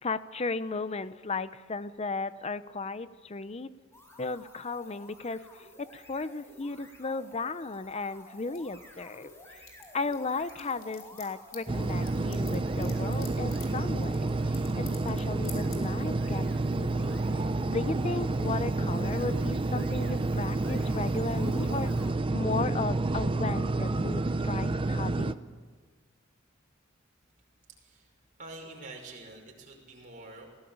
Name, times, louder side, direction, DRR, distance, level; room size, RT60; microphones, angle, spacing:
voice 1, 0.0-3.7 4.2-9.3 9.9-14.3 14.8-17.2 17.7-21.9 22.3-25.4, left 3 dB, 30° left, 14 dB, 0.7 m, -35 dB
sound 1, 3.9-22.2, left 1 dB, 15° left, 4.2 m, -52 dB
sound 2, 7.7-9.3 9.6-15.2 15.4-15.8, left 9 dB, 80° left, 4.1 m, -48 dB
sound 3, 11.7-25.3, right 2 dB, 25° right, 0.6 m, -29 dB
voice 2, 27.8-28.1 28.4-30.5, right 2 dB, 40° right, 0 dB, 5.5 m, -46 dB
20.5 x 17.0 x 8.8 m, 1.5 s
head